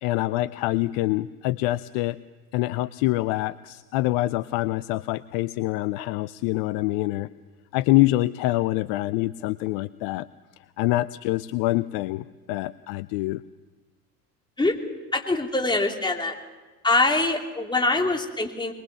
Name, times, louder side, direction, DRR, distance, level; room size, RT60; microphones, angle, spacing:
voice 1, 0.0-2.2 2.5-7.3 7.7-10.3 10.8-13.4, left 17 dB, 50° left, 16 dB, 0.6 m, -25 dB
voice 2, 15.1-16.3 16.8-18.7, left 2 dB, 10° left, 2 dB, 3.1 m, -23 dB
21.5 x 21.5 x 7.0 m, 1.2 s
figure-of-eight pair, 70°, 48 cm